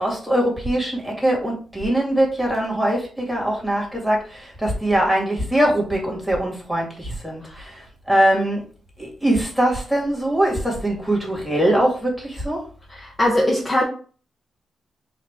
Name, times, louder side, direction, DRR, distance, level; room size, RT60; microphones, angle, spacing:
voice 1, 0.0-8.6 9.0-12.6, right 1 dB, ahead, 2.3 m, -22 dB
voice 2, 12.9-13.8, left 1 dB, 20° left, 0.9 m, -21 dB
4.8 x 2.9 x 3.6 m
cardioid pair, 105°, 0 cm